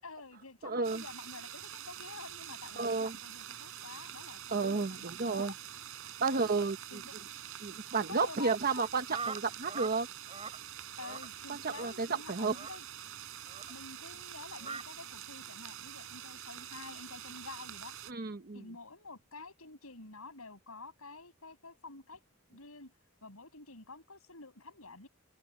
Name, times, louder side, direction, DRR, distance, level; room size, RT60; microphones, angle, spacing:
voice 1, 0.0-5.6 6.2-6.6 6.9-7.3 7.9-8.9 11.0-12.9 13.7-17.9 18.5-22.2 22.5-22.9 23.2-25.1, left 3 dB, 85° left, 6.5 m, -49 dB
voice 2, 0.6-1.0 2.8-3.2 4.5-5.5 6.2-6.8 7.6-10.1 11.8-12.5 18.1-18.6, right 4 dB, 45° right, 1.0 m, -32 dB
sound 1, 0.8-18.1, right 10 dB, 70° right, 4.0 m, -46 dB
sound 2, 9.1-10.0 10.2-10.6 11.0-11.3 11.7-11.9 12.5-12.8 13.5-13.7 14.6-14.8, right 4 dB, 30° right, 7.2 m, -41 dB
open air
head